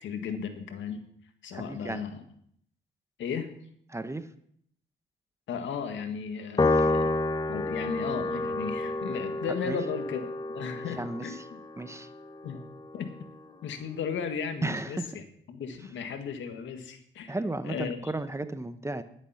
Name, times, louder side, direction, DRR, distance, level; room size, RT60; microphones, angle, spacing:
voice 1, 0.0-1.1 1.4-2.2 3.2-3.5 5.5-7.2 7.5-11.6 12.4-12.6 12.9-13.2 13.6-15.2 15.5-17.4 17.6-18.0, left 6 dB, 75° left, 7 dB, 1.7 m, -35 dB
voice 2, 1.5-2.0 3.9-4.3 6.6-6.9 9.6-9.8 10.8-11.4 11.8-12.1 14.6-15.1 17.3-19.0, right 2 dB, 15° right, 11 dB, 0.9 m, -34 dB
Piano, 6.6-13.1, left 2 dB, 20° left, 1.0 m, -30 dB
11.5 x 10.0 x 5.8 m, 0.67 s
cardioid pair, 70°, 20 cm